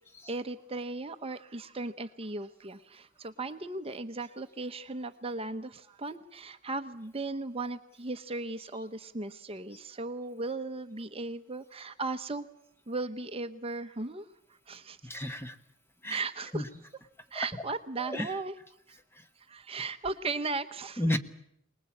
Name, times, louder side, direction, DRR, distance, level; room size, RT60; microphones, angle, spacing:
voice 1, 0.3-12.5 12.9-14.3 14.7-15.0 16.1-16.7 17.3-18.5 18.9-19.0 19.4-21.0, right 3 dB, 30° right, 9 dB, 0.9 m, -37 dB
voice 2, 15.0-15.6 16.0-16.2 16.5-16.6 18.0-18.3 21.0-21.2, left 1 dB, 10° left, 9 dB, 1.2 m, -31 dB
24.5 x 20.0 x 8.5 m, 0.73 s
head